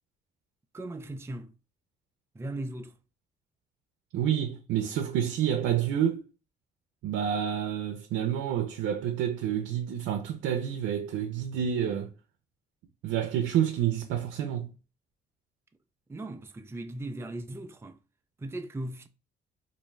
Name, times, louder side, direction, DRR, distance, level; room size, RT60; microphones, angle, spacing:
voice 1, 0.7-1.5 2.3-3.0 16.1-18.0 18.4-19.1, right 1 dB, 10° right, 0.4 m, -38 dB
voice 2, 4.1-6.3 7.0-12.1 13.0-14.7, right 9 dB, 90° right, 0.5 m, -29 dB
3.5 x 2.6 x 3.1 m
cardioid pair, 90°, 20 cm